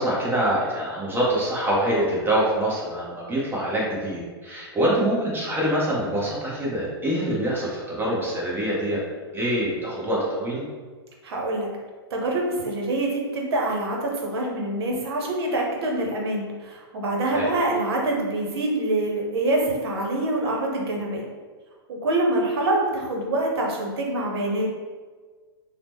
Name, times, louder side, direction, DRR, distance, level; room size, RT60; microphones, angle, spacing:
voice 1, 0.0-9.0 9.3-10.6 17.3-17.5, right 1 dB, 15° right, -6 dB, 0.8 m, -25 dB
voice 2, 11.2-11.7 12.1-21.2 21.9-24.7, right 2 dB, 70° right, -1 dB, 0.8 m, -25 dB
2.8 x 2.0 x 3.5 m, 1.5 s
hypercardioid pair, 120°, 13 cm